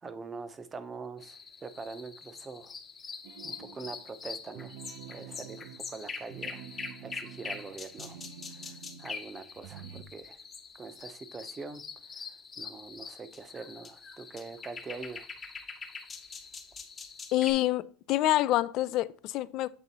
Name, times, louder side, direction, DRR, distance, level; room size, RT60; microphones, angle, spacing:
voice 1, 0.0-2.7 3.4-4.7 5.1-6.6 7.0-8.2 8.5-10.4 10.8-11.8 12.6-15.3, right 4 dB, 20° right, 0.7 m, -43 dB
sound 1, 1.2-17.5, left 5 dB, 20° left, 0.8 m, -44 dB
sound 2, 3.2-4.1 4.5-9.1 9.5-10.0, right 9 dB, 65° right, 0.6 m, -48 dB
voice 2, 17.3-19.7, left 15 dB, 50° left, 0.3 m, -27 dB
7.5 x 3.9 x 4.0 m
supercardioid pair, 140°, 0 cm